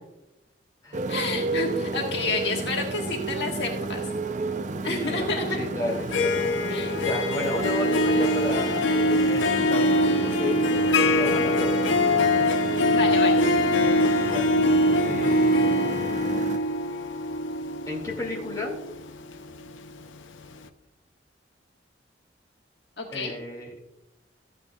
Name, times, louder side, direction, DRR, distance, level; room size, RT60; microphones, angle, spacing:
Motorcycle, 0.9-16.6, right 3 dB, 40° right, 0.5 m, -32 dB
voice 1, 1.1-4.0 4.8-5.6 6.7-7.0 12.9-13.5 23.0-23.3, left 3 dB, 65° left, 0 dB, 1.6 m, -29 dB
voice 2, 4.8-12.1 14.2-14.4 15.0-15.9 17.9-18.7 23.1-23.7, left 1 dB, 20° left, -2 dB, 2.2 m, -33 dB
Harp, 5.9-19.9, left 1 dB, 85° left, 0.6 m, -23 dB
13.5 x 8.8 x 2.3 m, 0.94 s
head